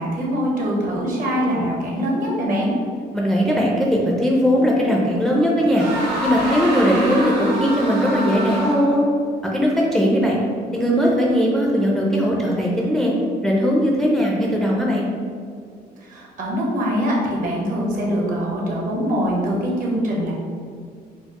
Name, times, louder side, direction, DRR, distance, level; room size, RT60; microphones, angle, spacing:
voice 1, 0.0-2.7 16.0-20.3, equal, 50° right, -3 dB, 1.0 m, -23 dB
voice 2, 3.1-5.8 6.2-9.1 9.4-10.4 10.7-13.1 13.4-15.1, equal, ahead, -3 dB, 0.4 m, -19 dB
sound 1, 5.7-9.1, right 1 dB, 90° right, 1.1 m, -26 dB
4.3 x 2.0 x 2.9 m, 2.1 s
cardioid pair, 110°, 17 cm